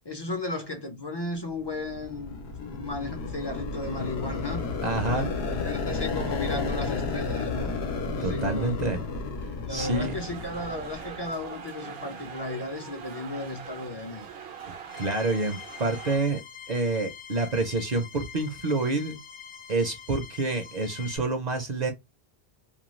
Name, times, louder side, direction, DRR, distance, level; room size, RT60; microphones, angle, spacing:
voice 1, 0.0-2.4 2.6-4.6 5.1-7.7 8.2-8.8 9.7-14.3, left 2 dB, 35° left, 0.4 m, -35 dB
sound 1, 1.6-11.4, left 4 dB, 85° left, 0.9 m, -32 dB
voice 2, 4.8-5.3 8.2-9.0 9.7-10.1 14.9-16.4 16.7-19.2 19.7-21.9, right 3 dB, 50° right, 0.6 m, -27 dB
sound 2, 9.8-16.2, right 7 dB, 75° right, 0.9 m, -42 dB
sound 3, 14.9-21.2, left 8 dB, 60° left, 0.8 m, -44 dB
2.5 x 2.2 x 3.0 m
omnidirectional pair, 1.0 m